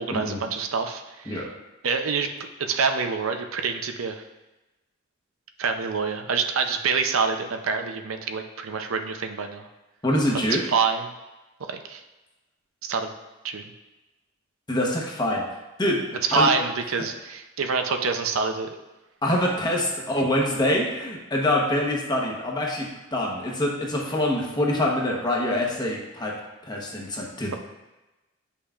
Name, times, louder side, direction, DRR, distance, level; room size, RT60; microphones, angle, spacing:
voice 1, 0.0-1.5 1.8-2.3 2.6-4.2 5.6-9.7 10.3-11.0 11.6-12.0 12.8-13.1 13.4-13.6 16.3-18.7, right 5 dB, 85° right, 6 dB, 0.5 m, -26 dB
voice 2, 10.0-10.6 14.7-15.5 15.8-16.5 19.2-27.5, left 1 dB, 20° left, -1 dB, 1.0 m, -25 dB
8.2 x 5.6 x 2.4 m, 1.1 s
head